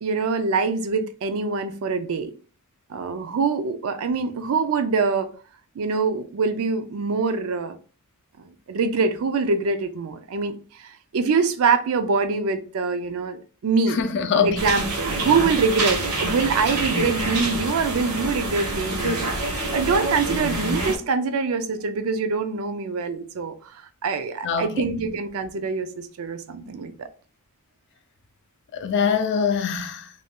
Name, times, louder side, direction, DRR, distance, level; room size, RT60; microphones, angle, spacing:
voice 1, 0.0-2.3 2.9-5.3 5.8-7.8 8.4-14.0 14.4-19.3 19.7-23.8 24.0-27.1, right 4 dB, 65° right, 0.4 m, -24 dB
voice 2, 13.9-14.6 24.4-25.0 28.7-30.1, left 6 dB, 55° left, 0.4 m, -23 dB
sound 1, 14.6-21.0, right 2 dB, 80° right, 1.0 m, -26 dB
2.6 x 2.2 x 3.4 m
head